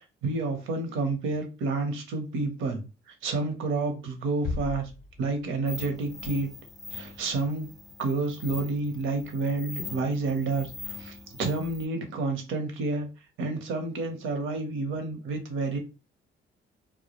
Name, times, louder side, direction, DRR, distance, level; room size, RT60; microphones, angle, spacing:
voice 1, 0.2-4.9 5.2-6.5 6.9-7.7 8.0-13.1 13.4-15.8, right 3 dB, 80° right, 0.7 m, -29 dB
sound 1, 4.4-5.8, left 3 dB, 55° left, 0.5 m, -36 dB
sound 2, 5.7-11.9, left 4 dB, ahead, 0.3 m, -43 dB
2.2 x 2.0 x 2.9 m
cardioid pair, 90°, 20 cm